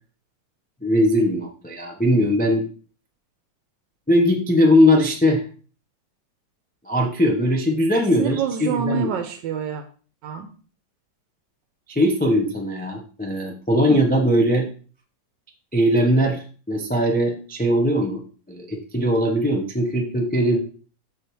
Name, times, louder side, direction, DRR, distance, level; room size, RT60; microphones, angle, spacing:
voice 1, 0.8-2.7 4.1-5.4 6.9-9.1 11.9-14.7 15.7-18.2 18.5-20.6, equal, 10° left, 2 dB, 0.4 m, -20 dB
voice 2, 8.2-9.8 10.2-10.5 13.9-14.0, right 6 dB, 85° right, 7 dB, 1.3 m, -26 dB
8.2 x 6.0 x 3.0 m, 0.40 s
omnidirectional pair, 1.9 m